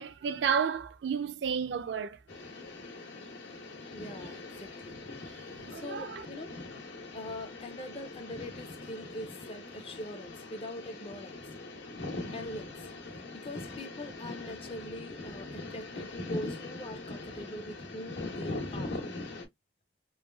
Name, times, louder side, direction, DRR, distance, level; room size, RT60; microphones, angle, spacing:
voice 1, 0.0-2.2 5.6-6.3, right 7 dB, 65° right, 0.4 m, -31 dB
sound 1, 2.3-19.5, left 2 dB, 80° left, 1.0 m, -42 dB
voice 2, 3.9-5.0 5.8-6.5 7.1-11.4 12.3-12.8 13.3-18.9, left 1 dB, 30° left, 0.4 m, -42 dB
3.2 x 2.4 x 2.2 m
head